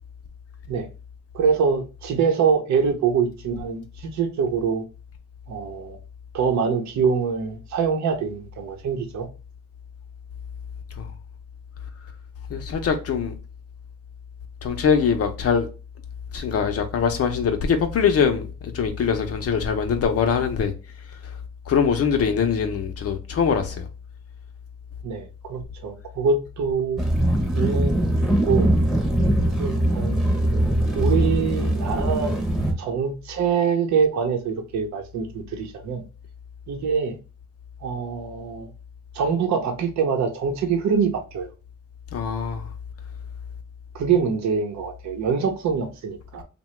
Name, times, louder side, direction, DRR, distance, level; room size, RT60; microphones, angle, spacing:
voice 1, 1.3-4.8 5.5-6.0 6.3-9.3 25.0-27.1 27.5-28.0 28.4-28.7 29.6-30.2 30.9-32.3 32.8-36.0 36.7-37.2 37.8-38.7 39.1-41.5 43.9-46.4, right 6 dB, 65° right, 0.8 m, -24 dB
voice 2, 12.5-13.3 14.6-15.7 16.3-18.5 18.7-20.7 21.7-23.9 42.1-42.7, left 6 dB, 50° left, 0.6 m, -22 dB
sound 1, 27.0-32.7, right 1 dB, ahead, 0.8 m, -21 dB
2.8 x 2.2 x 3.2 m
cardioid pair, 90°, 30 cm